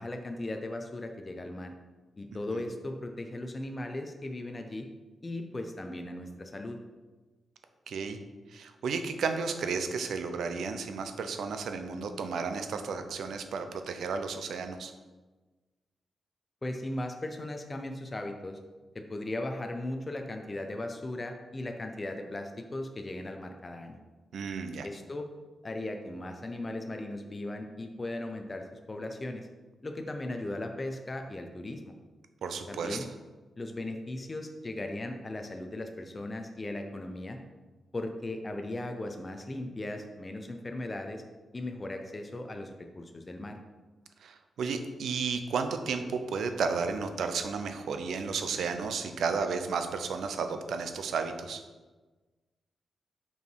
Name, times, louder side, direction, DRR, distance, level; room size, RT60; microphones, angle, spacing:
voice 1, 0.0-1.7 2.2-4.9 5.2-6.8 16.6-18.6 18.9-24.0 24.8-25.3 25.6-29.5 29.8-31.9 32.7-33.1 33.6-37.4 37.9-41.2 41.5-43.6, left 1 dB, 25° left, 4 dB, 0.5 m, -37 dB
voice 2, 7.9-8.2 8.5-14.9 24.3-24.9 32.4-33.0 44.2-51.6, right 5 dB, 80° right, 7 dB, 0.6 m, -33 dB
5.5 x 4.7 x 4.6 m, 1.3 s
wide cardioid pair, 125°, 0 cm